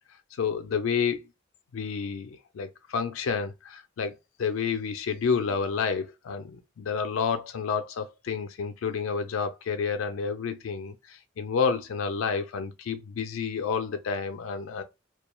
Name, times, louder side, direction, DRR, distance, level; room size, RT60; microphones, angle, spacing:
voice 1, 0.4-1.3 1.7-14.8, left 6 dB, 85° left, 0.4 m, -30 dB
2.3 x 2.1 x 3.0 m
head